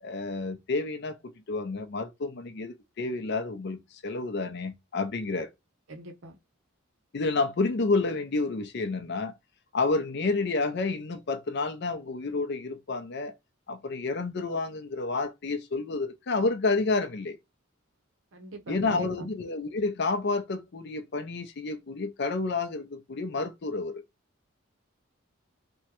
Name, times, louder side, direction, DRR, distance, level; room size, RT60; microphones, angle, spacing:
voice 1, 0.0-5.5 7.1-9.3 9.7-13.3 13.7-17.4 18.7-24.0, left 3 dB, 55° left, 0.5 m, -30 dB
voice 2, 5.9-6.4 18.3-19.3, right 1 dB, 65° right, 0.7 m, -41 dB
3.5 x 2.1 x 2.8 m
head